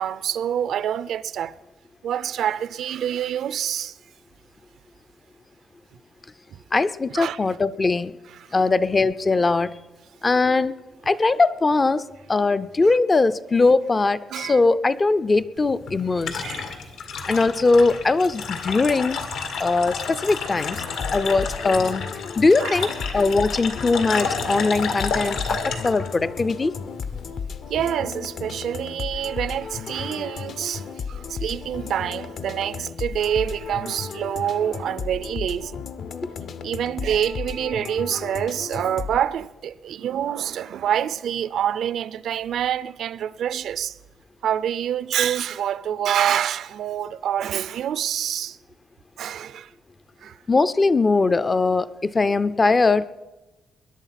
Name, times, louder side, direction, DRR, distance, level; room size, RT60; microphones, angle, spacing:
voice 1, 0.0-1.5 2.0-3.9 6.5-6.6 7.1-7.4 8.4-8.5 14.3-14.6 16.4-16.8 17.3-17.4 22.6-22.9 27.7-35.8 36.6-44.0 44.4-48.6 49.2-49.7 50.2-50.4, right 10 dB, 70° right, 0.5 m, -26 dB
voice 2, 6.7-8.1 8.5-9.8 10.2-10.7 11.1-12.0 12.3-16.4 17.3-19.3 19.6-20.8 21.1-22.1 22.4-26.7 50.5-53.1, left 3 dB, 20° left, 0.4 m, -20 dB
sound 1, 15.6-27.3, left 5 dB, 80° left, 1.9 m, -31 dB
sound 2, 20.7-39.2, left 6 dB, 55° left, 0.7 m, -34 dB
21.0 x 11.0 x 5.8 m
cardioid pair, 165°, 0 cm